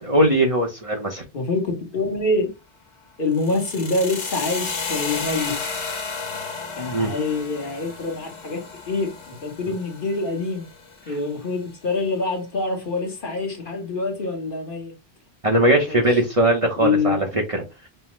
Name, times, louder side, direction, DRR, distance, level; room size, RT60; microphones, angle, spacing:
voice 1, 0.0-1.2 6.9-7.1 15.4-17.6, right 1 dB, 35° right, 0.7 m, -20 dB
voice 2, 1.3-2.5 3.2-5.5 6.8-10.7 11.1-14.9 15.9-16.1 16.8-17.2, left 3 dB, 55° left, 1.1 m, -25 dB
sound 1, 3.3-11.4, left 4 dB, 35° left, 0.5 m, -33 dB
5.5 x 2.0 x 3.0 m
omnidirectional pair, 1.1 m